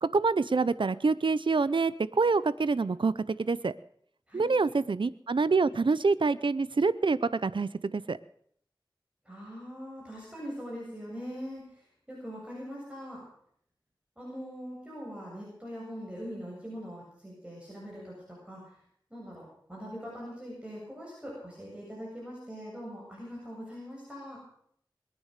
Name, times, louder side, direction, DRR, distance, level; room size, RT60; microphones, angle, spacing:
voice 1, 0.0-3.7 4.3-8.2, right 4 dB, 75° right, 16 dB, 0.6 m, -26 dB
voice 2, 9.2-13.3 14.2-18.7 19.1-24.4, equal, 15° right, -4 dB, 7.7 m, -42 dB
21.5 x 9.9 x 6.6 m, 0.64 s
wide cardioid pair, 50°, 8 cm